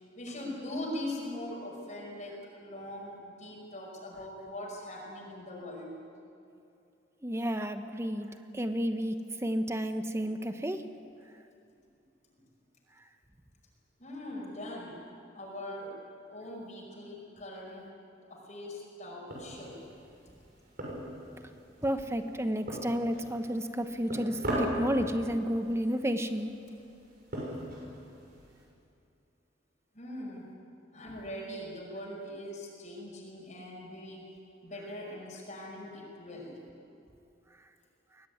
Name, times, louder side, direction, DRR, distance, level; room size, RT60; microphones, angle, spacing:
voice 1, 0.1-5.9 14.0-15.0 15.3-15.9 16.3-17.9 18.3-19.8 29.9-30.4 30.9-34.3 34.6-36.6, left 1 dB, 40° left, -3 dB, 5.5 m, -41 dB
voice 2, 7.2-8.3 8.5-9.1 9.4-10.8 21.8-26.5, equal, 15° right, 8 dB, 1.1 m, -31 dB
sound 1, 19.3-28.6, equal, 55° right, 6.5 m, -40 dB
22.5 x 17.0 x 9.5 m, 2.6 s
head